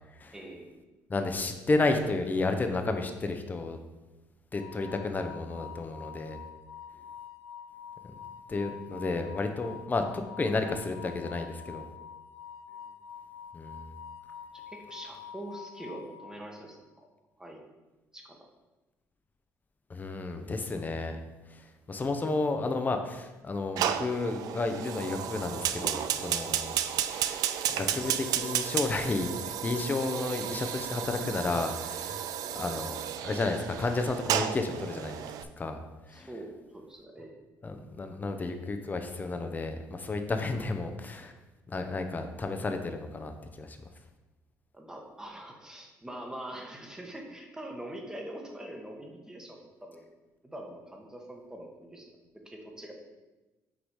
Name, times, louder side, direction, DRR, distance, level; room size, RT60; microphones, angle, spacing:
voice 1, 0.3-0.8 6.9-7.0 12.7-12.8 14.5-17.1 17.4-17.6 18.1-18.5 26.5-26.6 36.1-37.3 44.7-50.1 50.4-52.1 52.4-52.9, right 1 dB, 10° right, 1 dB, 1.2 m, -44 dB
voice 2, 1.1-3.8 4.5-6.4 8.5-11.9 13.5-13.9 19.9-21.2 21.5-27.4 27.7-32.3 32.5-33.0 33.2-35.3 35.6-35.8 36.1-36.3 37.6-41.3 41.7-43.8, left 3 dB, 25° left, 6 dB, 0.8 m, -32 dB
sound 1, 4.5-16.8, left 8 dB, 55° left, 1.2 m, -46 dB
Fire, 23.8-35.4, right 10 dB, 70° right, 0.4 m, -33 dB
6.3 x 3.9 x 4.8 m, 1.1 s
cardioid pair, 90°, 7 cm